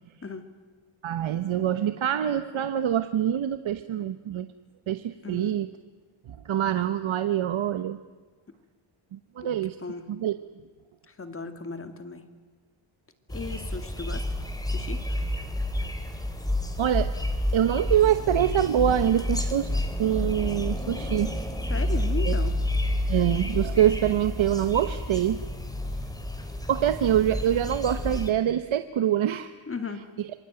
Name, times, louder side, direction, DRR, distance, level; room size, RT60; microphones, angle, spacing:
voice 1, 1.0-4.5 4.9-5.7 6.4-8.0 9.1-9.8 10.1-10.3 16.8-17.1 17.5-19.7 20.0-21.3 22.2-22.3 23.1-25.4 26.7-29.5 30.2-30.3, right 10 dB, 70° right, 10 dB, 1.1 m, -25 dB
voice 2, 5.2-5.5 9.8-10.1 11.1-12.3 13.3-14.2 14.7-15.0 21.7-22.6 29.7-30.1, left 4 dB, 25° left, 9 dB, 2.3 m, -36 dB
sound 1, 13.3-28.3, left 1 dB, 5° left, 2.9 m, -29 dB
27.0 x 23.5 x 9.0 m, 1.4 s
wide cardioid pair, 160°, 50 cm